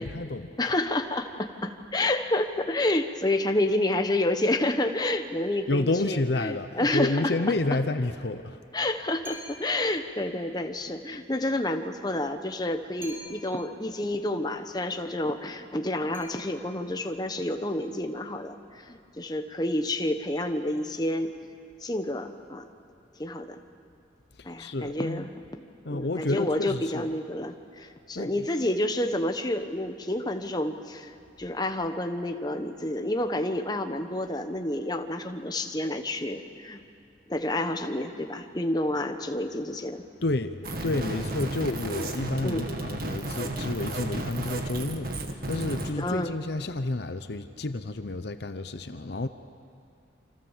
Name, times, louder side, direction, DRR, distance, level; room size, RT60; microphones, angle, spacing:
voice 1, 0.0-0.6 5.7-8.6 24.4-25.3 25.8-27.1 28.1-28.5 40.2-49.3, left 2 dB, 60° left, 10 dB, 0.8 m, -30 dB
voice 2, 0.6-7.2 8.7-21.3 21.8-22.6 23.2-23.6 24.4-25.4 25.9-36.8 37.3-40.0 42.4-42.6 46.0-46.3, left 1 dB, 20° left, 6 dB, 1.1 m, -29 dB
sound 1, 9.2-9.9 13.0-13.7 16.1-16.9, equal, 10° right, 7.3 m, -45 dB
sound 2, 40.6-45.9, right 1 dB, 50° right, 1.9 m, -33 dB
28.0 x 26.0 x 7.4 m, 2.5 s
head